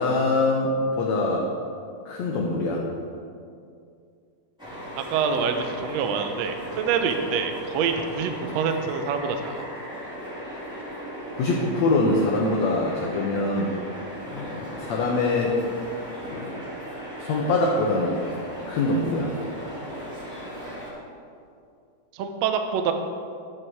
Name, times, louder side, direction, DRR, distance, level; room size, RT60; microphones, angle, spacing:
voice 1, 0.0-1.5 2.0-2.8 11.3-13.8 14.3-15.6 16.3-16.5 17.2-18.2 18.7-19.3, left 2 dB, 70° left, -2 dB, 1.7 m, -24 dB
sound 1, 4.6-20.9, equal, ahead, 2.5 m, -37 dB
voice 2, 5.1-9.7 22.1-22.9, right 6 dB, 90° right, 6 dB, 1.5 m, -26 dB
11.0 x 9.2 x 4.6 m, 2.4 s
omnidirectional pair, 4.2 m